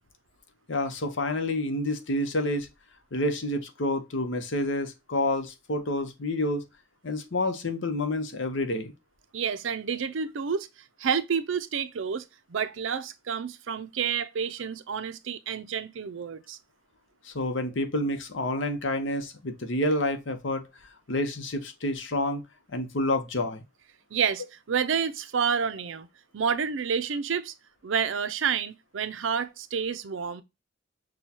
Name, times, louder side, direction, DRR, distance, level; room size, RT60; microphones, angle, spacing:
voice 1, 0.7-2.7 3.1-6.6 7.0-8.9 17.2-20.6 21.1-22.4 22.7-23.6, left 1 dB, 75° left, 0.9 m, -28 dB
voice 2, 9.3-10.7 11.0-16.6 24.1-26.1 26.3-27.5 27.8-30.4, right 6 dB, 85° right, 0.5 m, -29 dB
6.2 x 2.3 x 2.8 m
head